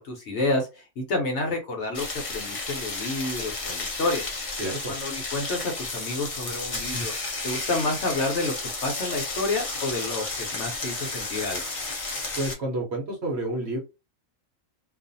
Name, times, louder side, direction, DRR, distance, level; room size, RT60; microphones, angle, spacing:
voice 1, 0.0-4.3 4.9-11.6, left 2 dB, 60° left, 2 dB, 0.9 m, -29 dB
sound 1, 1.9-12.5, left 3 dB, 40° left, 0.5 m, -32 dB
voice 2, 4.6-4.9 12.4-13.8, right 1 dB, 55° right, 0 dB, 0.9 m, -29 dB
2.5 x 2.4 x 2.6 m, 0.27 s
omnidirectional pair, 1.5 m